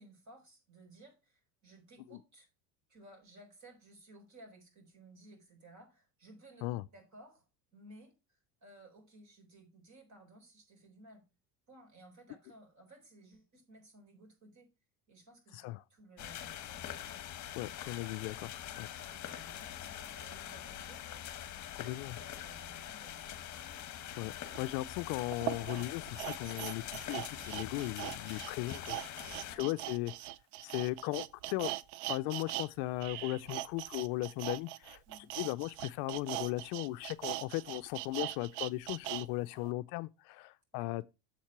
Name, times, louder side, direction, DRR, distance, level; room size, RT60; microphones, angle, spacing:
voice 1, 0.0-2.5 2.9-6.7 6.9-11.3 11.7-14.7 15.1-16.9 19.0-21.3 22.2-23.7 27.7-27.9 29.5-29.7 35.1-35.3 40.7-40.9, right 1 dB, 35° right, 4.0 m, -58 dB
voice 2, 15.5-15.8 17.6-18.9 21.8-22.2 24.2-30.1 30.6-31.7 32.1-35.0 35.4-41.0, left 18 dB, 60° left, 0.5 m, -37 dB
sound 1, 16.2-29.6, left 11 dB, 35° left, 1.2 m, -44 dB
sound 2, 24.5-24.6 25.3-32.7 33.0-39.3 39.6-39.7, right 15 dB, 55° right, 0.6 m, -40 dB
7.4 x 4.3 x 5.9 m
supercardioid pair, 105°, 48 cm